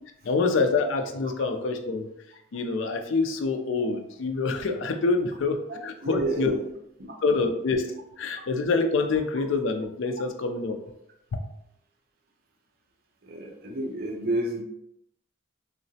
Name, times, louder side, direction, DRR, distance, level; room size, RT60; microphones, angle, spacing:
voice 1, 0.2-2.1 2.5-6.5 7.2-7.8 8.2-10.8 11.3-11.4, left 3 dB, 75° left, 6 dB, 0.4 m, -26 dB
voice 2, 5.7-6.6 7.0-7.2 8.3-8.4 13.2-14.6, right 1 dB, 50° right, 2 dB, 0.5 m, -31 dB
3.7 x 2.0 x 2.6 m, 0.77 s
head